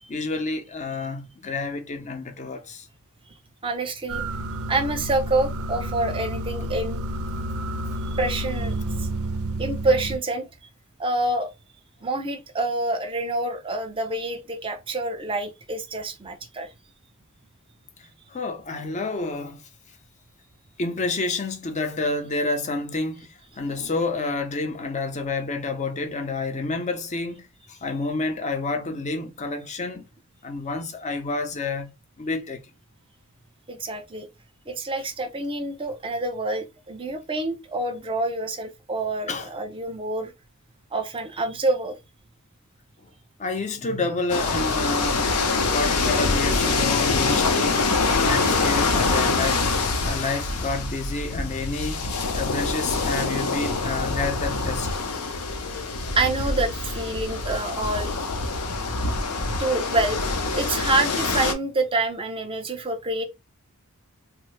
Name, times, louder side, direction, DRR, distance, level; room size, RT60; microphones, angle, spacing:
voice 1, 0.1-2.9 18.3-19.6 20.8-30.1 30.4-31.9 32.2-32.7 39.3-39.5 43.4-45.3 45.7-49.7 50.0-52.0 52.3-54.9, left 3 dB, 35° left, 0.5 m, -29 dB
voice 2, 3.6-4.2 4.7-7.0 8.1-9.1 9.6-10.5 11.0-11.5 12.0-16.7 33.7-34.3 34.7-40.3 40.9-42.0 56.2-58.1 59.6-60.2 60.5-63.2, right 2 dB, 25° right, 0.6 m, -27 dB
sound 1, 4.1-10.2, right 1 dB, 70° right, 0.4 m, -30 dB
sound 2, 44.3-61.5, left 3 dB, 85° left, 0.6 m, -25 dB
3.4 x 2.0 x 3.1 m
head